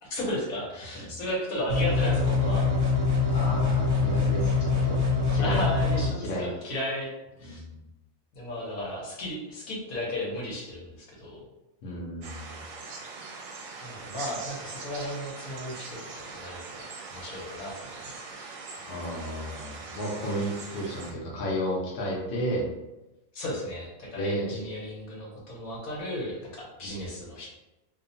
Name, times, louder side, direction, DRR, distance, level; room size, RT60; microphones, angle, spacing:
voice 1, 0.0-2.7 5.4-7.1 7.4-7.6 8.3-11.4 13.8-18.2 23.3-27.5, left 1 dB, 85° left, -4 dB, 1.3 m, -34 dB
sound 1, 1.7-6.1, left 4 dB, 50° right, 1.0 m, -24 dB
voice 2, 3.3-5.0 5.3-5.6 6.2-6.5 7.4-7.8 11.8-12.6 18.8-22.7 24.2-24.6, equal, 55° left, -4 dB, 0.9 m, -32 dB
sound 2, 12.2-21.1, right 4 dB, 75° right, 0.9 m, -42 dB
2.8 x 2.1 x 2.6 m, 1.0 s
omnidirectional pair, 1.4 m